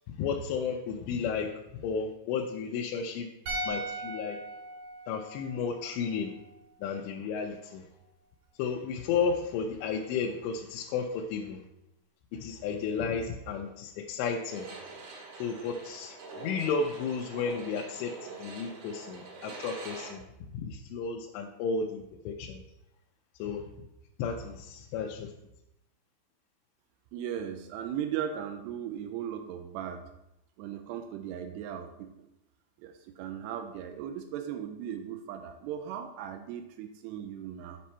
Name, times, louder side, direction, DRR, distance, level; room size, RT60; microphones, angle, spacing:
voice 1, 0.2-1.5 1.8-3.3 3.7-4.4 5.1-6.3 6.8-7.8 8.6-11.6 12.3-14.7 15.4-18.1 18.4-20.2 20.5-22.6 23.4-23.6 24.2-25.3, left 5 dB, 80° left, 1 dB, 2.6 m, -33 dB
sound 1, 3.5-6.7 6.9-7.1, right 1 dB, 50° right, 1.9 m, -39 dB
sound 2, 14.5-20.1, right 3 dB, 70° right, 4.1 m, -45 dB
voice 2, 27.1-30.0 30.6-32.1 32.8-37.8, right 9 dB, 90° right, 6 dB, 2.4 m, -37 dB
8.4 x 5.6 x 4.3 m, 0.88 s
omnidirectional pair, 5.4 m